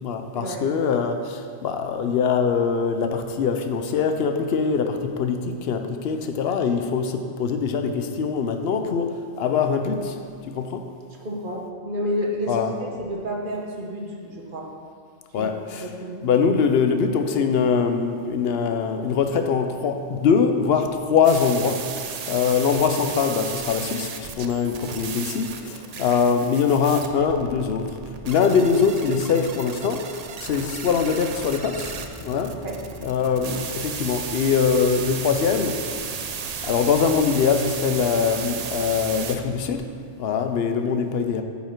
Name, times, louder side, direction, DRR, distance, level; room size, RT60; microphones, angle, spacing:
voice 1, 0.0-9.1 9.4-10.2 10.5-10.8 12.5-12.7 15.3-15.8 16.2-21.8 22.3-28.0 28.3-30.0 30.4-31.9 32.2-32.6 33.0-35.8 36.6-39.8 40.2-41.4, left 6 dB, 60° left, 6 dB, 0.8 m, -22 dB
voice 2, 11.2-14.7 15.4-15.5 15.8-16.3 32.6-32.7, equal, 45° right, -1 dB, 1.2 m, -30 dB
sound 1, 21.2-39.4, right 6 dB, 85° right, 0.3 m, -34 dB
sound 2, 31.8-39.8, equal, 70° right, 1.8 m, -43 dB
8.9 x 5.6 x 4.5 m, 2.2 s
omnidirectional pair, 1.3 m